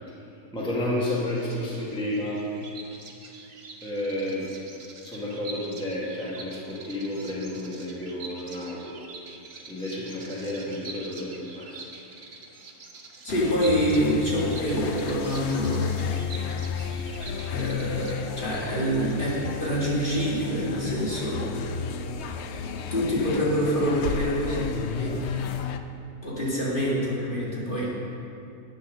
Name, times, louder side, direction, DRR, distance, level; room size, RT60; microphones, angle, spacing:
voice 1, 0.5-2.4 3.8-4.5 5.0-8.9 9.7-11.8 27.6-27.9, left 1 dB, 5° left, -6 dB, 1.5 m, -31 dB
Bird vocalization bird call bird song, 1.1-20.7, right 3 dB, 45° right, 1.1 m, -45 dB
voice 2, 13.2-16.2 16.7-16.9 17.5-19.3 19.6-21.4 22.9-24.7 25.0-25.2 26.2-27.9, equal, 35° left, -7 dB, 2.0 m, -26 dB
sound 1, 13.3-25.8, left 7 dB, 75° left, 0.6 m, -32 dB
9.0 x 7.2 x 6.4 m, 2.7 s
omnidirectional pair, 1.6 m